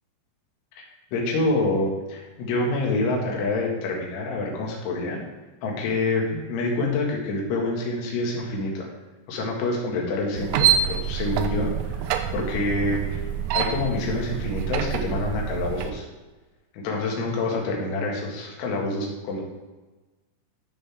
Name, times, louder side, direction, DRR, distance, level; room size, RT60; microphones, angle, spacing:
voice 1, 1.1-5.2 5.6-8.9 9.3-13.2 13.5-16.1 16.7-19.4, left 2 dB, 70° left, -1 dB, 4.1 m, -27 dB
sound 1, 10.4-15.9, right 8 dB, 90° right, 2.6 m, -26 dB
13.5 x 6.3 x 3.6 m, 1.2 s
omnidirectional pair, 5.9 m